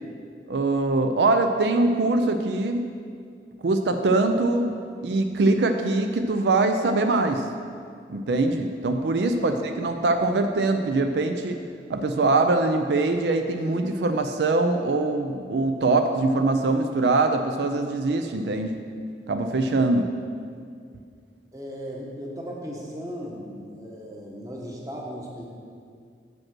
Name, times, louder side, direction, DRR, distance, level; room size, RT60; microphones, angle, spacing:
voice 1, 0.5-2.8 3.6-4.7 5.0-7.4 8.1-11.6 11.9-18.7 19.3-20.1, right 2 dB, 75° right, 6 dB, 0.4 m, -23 dB
voice 2, 21.5-25.4, equal, 20° right, -2 dB, 1.0 m, -37 dB
7.4 x 5.2 x 6.0 m, 2.2 s
head